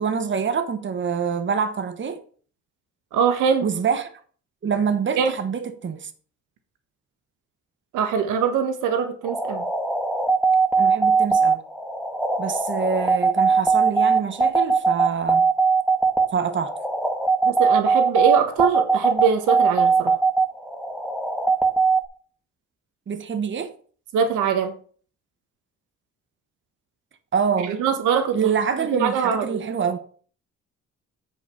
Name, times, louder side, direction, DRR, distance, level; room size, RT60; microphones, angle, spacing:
voice 1, 0.0-2.2 3.6-4.1 4.6-6.1 10.8-11.6 12.4-15.5 16.3-16.7 23.1-23.7 27.3-27.8 28.3-30.0, right 6 dB, 40° right, 1.2 m, -25 dB
voice 2, 3.1-3.7 5.2-5.3 7.9-9.6 17.4-20.2 24.1-24.7 27.6-28.5 28.8-29.6, right 7 dB, 90° right, 1.3 m, -22 dB
sound 1, 9.2-22.0, right 4 dB, 5° right, 1.4 m, -20 dB
8.0 x 5.3 x 5.4 m
cardioid pair, 90°, 30 cm